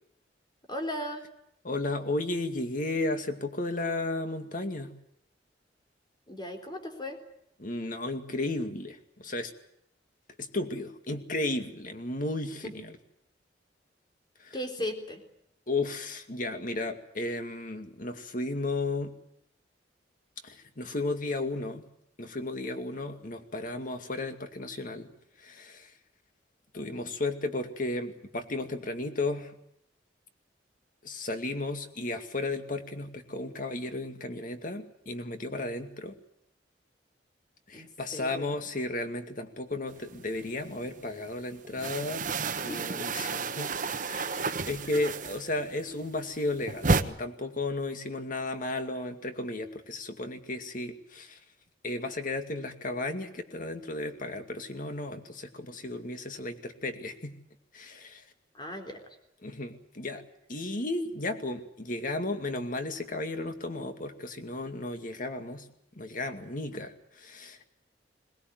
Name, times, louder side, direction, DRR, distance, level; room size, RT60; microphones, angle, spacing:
voice 1, 0.7-1.2 6.3-7.2 12.6-12.7 14.5-15.2 37.7-38.5 42.7-42.9 58.5-59.0, left 1 dB, 25° left, 4 dB, 3.9 m, -37 dB
voice 2, 1.6-4.9 7.6-9.5 10.4-12.9 14.4-14.6 15.7-19.2 20.4-21.8 22.2-25.1 25.4-25.9 26.7-29.5 31.0-36.1 37.7-42.3 42.6-43.8 44.1-51.4 51.8-57.4 57.7-58.2 59.4-60.2 60.5-65.7 65.9-67.7, left 2 dB, 50° left, 7 dB, 2.3 m, -34 dB
sound 1, 40.0-41.0 41.3-45.7 46.0-47.0, right 4 dB, 45° right, 1.1 m, -31 dB
22.5 x 19.0 x 9.5 m, 0.74 s
head